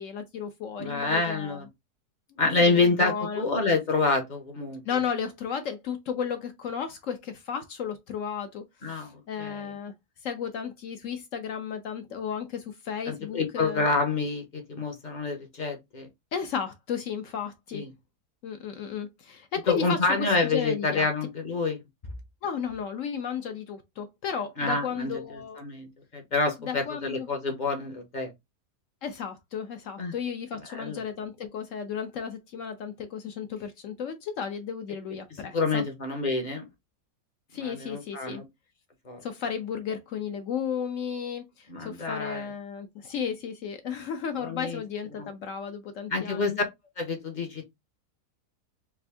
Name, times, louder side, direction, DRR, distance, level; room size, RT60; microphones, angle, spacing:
voice 1, 0.0-1.6 2.6-3.5 4.8-9.9 10.2-13.8 16.3-17.8 18.4-20.0 20.4-21.1 22.4-25.6 26.6-27.3 29.0-35.8 37.5-38.4 39.2-46.6, left 7 dB, 65° left, 0.8 m, -34 dB
voice 2, 0.8-1.7 2.4-4.8 8.8-9.7 13.1-16.1 17.7-17.9 19.7-21.8 24.6-28.3 30.0-30.1 30.7-31.0 35.5-36.7 37.5-38.4 39.0-39.2 41.7-42.5 44.4-44.8 45.2-45.3 46.1-46.5 47.0-47.6, left 3 dB, 40° left, 0.7 m, -28 dB
3.5 x 2.5 x 3.3 m
omnidirectional pair, 1.7 m